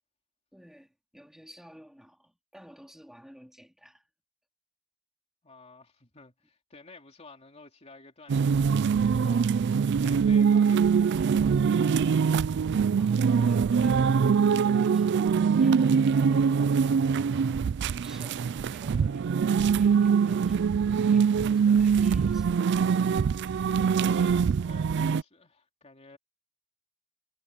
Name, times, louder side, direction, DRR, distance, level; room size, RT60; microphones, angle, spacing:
voice 1, 0.5-4.1 13.0-14.0 14.8-16.8 17.2-17.7 18.0-22.6, equal, ahead, 3.7 m, -52 dB
voice 2, 5.4-12.4 24.1-26.2, left 3 dB, 30° left, 3.0 m, -53 dB
sound 1, 8.3-25.2, right 6 dB, 55° right, 0.4 m, -23 dB
head